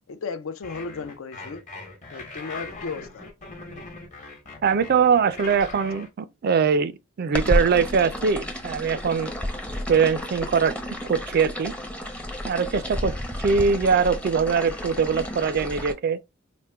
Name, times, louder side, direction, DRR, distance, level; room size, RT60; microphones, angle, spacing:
voice 1, 0.1-1.7 2.1-3.3, left 4 dB, 65° left, 0.5 m, -35 dB
sound 1, 0.6-6.1, left 3 dB, 35° left, 1.0 m, -40 dB
voice 2, 4.6-6.9 7.2-9.3 9.9-10.7 11.1-11.7 12.4-16.2, right 6 dB, 45° right, 0.3 m, -22 dB
sound 2, 7.3-15.9, left 1 dB, 5° left, 0.6 m, -31 dB
4.4 x 2.1 x 3.4 m
head